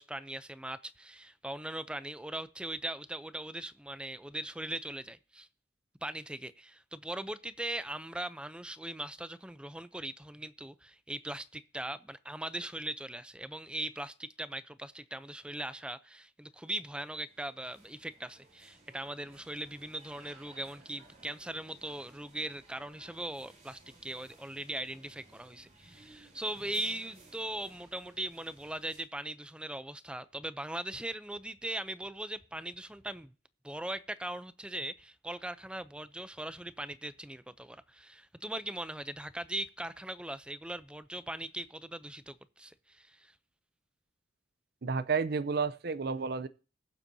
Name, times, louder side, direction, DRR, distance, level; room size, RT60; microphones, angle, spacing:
voice 1, 0.0-5.5 6.0-33.3 33.6-43.3, right 1 dB, 5° right, 0.5 m, -40 dB
sound 1, 16.7-29.0, right 2 dB, 40° right, 3.9 m, -59 dB
voice 2, 44.8-46.5, right 5 dB, 60° right, 0.6 m, -31 dB
21.5 x 7.4 x 2.7 m
head